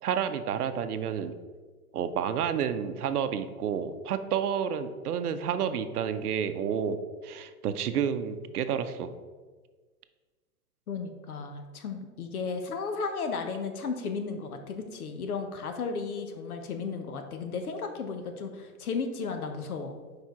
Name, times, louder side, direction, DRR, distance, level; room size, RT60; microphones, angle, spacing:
voice 1, 0.0-1.3 1.9-7.0 7.2-9.1, right 8 dB, 75° right, 10 dB, 0.7 m, -30 dB
voice 2, 10.9-19.9, left 5 dB, 70° left, 6 dB, 1.0 m, -34 dB
4.9 x 4.5 x 4.7 m, 1.4 s
hypercardioid pair, 175°, 46 cm